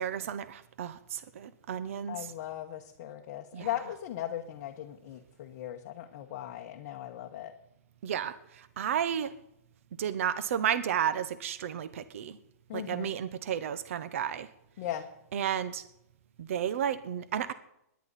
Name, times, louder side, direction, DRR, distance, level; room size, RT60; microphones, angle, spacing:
voice 1, 0.0-2.2 3.5-3.7 8.0-9.3 10.0-12.4 12.7-14.5 15.3-15.8 16.4-17.5, right 9 dB, 55° right, 13 dB, 0.8 m, -32 dB
voice 2, 2.1-7.5 12.7-13.1 14.8-15.0, left 12 dB, 35° left, 2 dB, 1.1 m, -38 dB
19.5 x 10.5 x 4.1 m, 0.80 s
hypercardioid pair, 170°, 9 cm